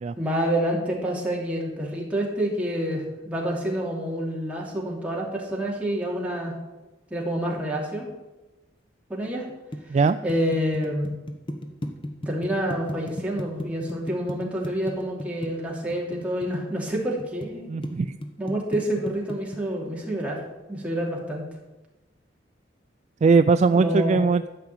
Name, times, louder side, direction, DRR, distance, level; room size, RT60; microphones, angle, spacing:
voice 1, 0.1-6.5 7.1-8.1 9.1-9.5 10.2-11.2 12.3-17.7 18.4-20.4 20.7-21.4 23.7-24.2, equal, 10° right, -3 dB, 2.9 m, -28 dB
sound 1, 9.3-17.5 17.8-19.6, equal, 30° left, 1.3 m, -34 dB
voice 2, 17.7-18.1 23.2-24.5, right 4 dB, 40° right, 11 dB, 0.3 m, -19 dB
12.5 x 5.8 x 8.8 m, 1.1 s
head